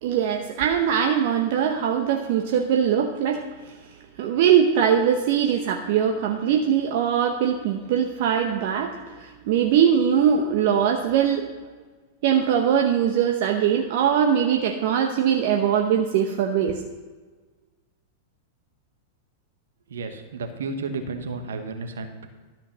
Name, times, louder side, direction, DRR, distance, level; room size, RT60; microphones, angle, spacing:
voice 1, 0.0-3.7 4.2-11.4 12.2-16.8, right 8 dB, 55° right, 3 dB, 0.9 m, -21 dB
voice 2, 19.9-22.3, right 3 dB, 70° right, 7 dB, 1.3 m, -32 dB
12.5 x 5.6 x 6.1 m, 1.4 s
figure-of-eight pair, 95°, 0 cm